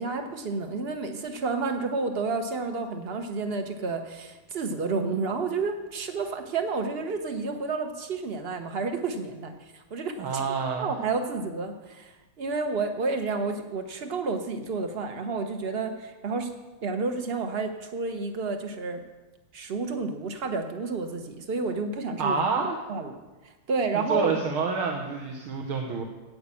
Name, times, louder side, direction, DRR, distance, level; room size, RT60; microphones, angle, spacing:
voice 1, 0.0-10.4 10.8-16.5 16.8-19.0 19.5-22.4 22.9-23.2 23.4-24.3, right 4 dB, 40° right, 6 dB, 0.9 m, -30 dB
voice 2, 10.2-10.9 22.2-22.8 23.9-26.0, right 5 dB, 75° right, 1 dB, 2.1 m, -28 dB
10.5 x 8.6 x 8.5 m, 1.2 s
omnidirectional pair, 2.4 m